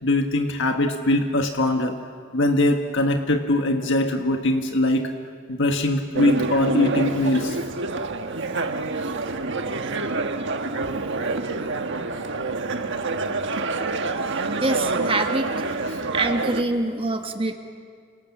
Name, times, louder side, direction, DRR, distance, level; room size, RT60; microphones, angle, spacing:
voice 1, 0.0-1.9 2.3-5.1 5.5-7.6, left 1 dB, 65° left, 4 dB, 1.6 m, -22 dB
sound 1, 6.1-16.6, right 3 dB, 60° right, 1.4 m, -27 dB
voice 2, 14.6-15.5 15.9-17.5, right 2 dB, 25° right, 5 dB, 1.5 m, -25 dB
29.5 x 27.5 x 7.3 m, 2.1 s
head